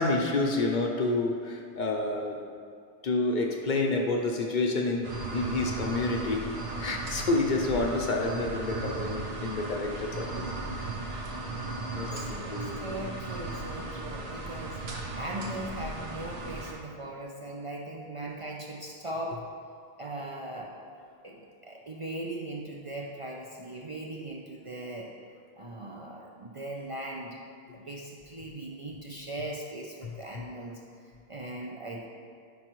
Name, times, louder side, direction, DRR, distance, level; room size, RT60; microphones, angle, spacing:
voice 1, 0.0-2.4 3.0-6.4 6.8-11.0 11.6-11.7 11.9-12.9 30.0-30.1, left 2 dB, 55° left, 2 dB, 0.7 m, -29 dB
sound 1, 5.0-16.7, right 2 dB, 80° right, 1.1 m, -36 dB
voice 2, 12.1-14.8 15.1-19.4 20.0-20.7 21.2-25.1 25.6-27.4 27.7-30.8 31.3-32.1, right 1 dB, 40° right, -2 dB, 0.5 m, -39 dB
9.2 x 4.6 x 3.0 m, 2.3 s
omnidirectional pair, 1.0 m